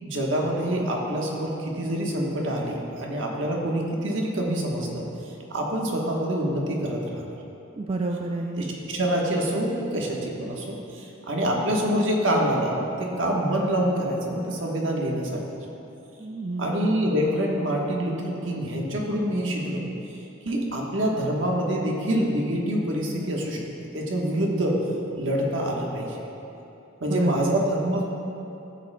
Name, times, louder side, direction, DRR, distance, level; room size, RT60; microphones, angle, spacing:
voice 1, 0.0-5.1 5.5-7.3 8.6-15.4 16.6-19.8 20.4-23.6 23.9-24.8 25.2-26.2 27.0-28.1, right 1 dB, 70° right, -1 dB, 1.2 m, -26 dB
voice 2, 7.8-8.6 16.2-16.9 27.1-27.6, right 2 dB, 30° right, 2 dB, 0.3 m, -29 dB
13.5 x 7.3 x 2.2 m, 2.9 s
head